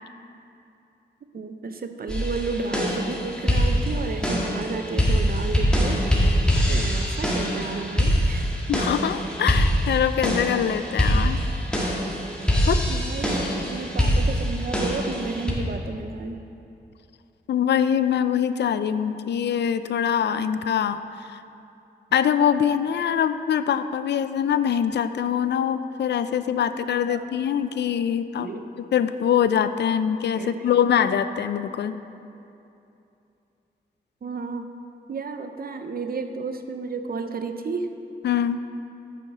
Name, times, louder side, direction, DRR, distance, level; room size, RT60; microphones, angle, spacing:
voice 1, 1.3-8.5 12.9-16.4 27.1-27.3 28.4-28.7 30.3-30.7 34.2-34.7 35.1-37.9, right 4 dB, 55° right, 7 dB, 0.7 m, -32 dB
sound 1, 2.1-15.5, equal, 5° left, 1.8 m, -24 dB
voice 2, 8.7-11.4 11.7-11.8 12.7-12.8 17.5-21.4 22.1-28.5 28.8-31.9 38.2-38.7, left 8 dB, 70° left, 12 dB, 0.4 m, -23 dB
9.2 x 5.4 x 4.8 m, 2.7 s
cardioid pair, 55°, 19 cm